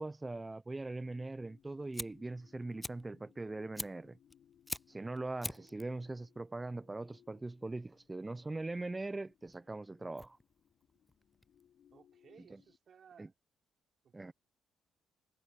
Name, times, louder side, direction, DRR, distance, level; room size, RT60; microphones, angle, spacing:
voice 1, 0.0-4.2 4.9-10.4 12.5-12.6 13.2-13.3 14.1-14.3, right 2 dB, 20° right, 0.8 m, -41 dB
sound 1, 1.0-12.8, left 9 dB, 65° left, 3.6 m, -67 dB
Fire, 1.5-12.0, left 1 dB, 10° left, 0.3 m, -48 dB
voice 2, 11.9-13.3 14.0-14.3, right 7 dB, 55° right, 3.9 m, -61 dB
hypercardioid pair, 55°, 0 cm